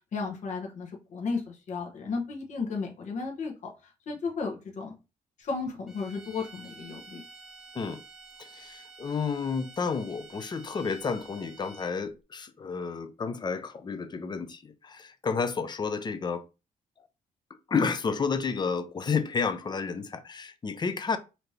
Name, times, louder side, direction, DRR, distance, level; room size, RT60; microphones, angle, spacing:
voice 1, 0.1-4.9 5.4-7.2, left 4 dB, 60° left, 1.1 m, -34 dB
sound 1, 5.9-12.1, right 4 dB, ahead, 0.7 m, -50 dB
voice 2, 8.4-16.4 17.7-21.2, left 5 dB, 30° left, 0.6 m, -31 dB
4.2 x 2.8 x 3.2 m
cardioid pair, 105°, 14 cm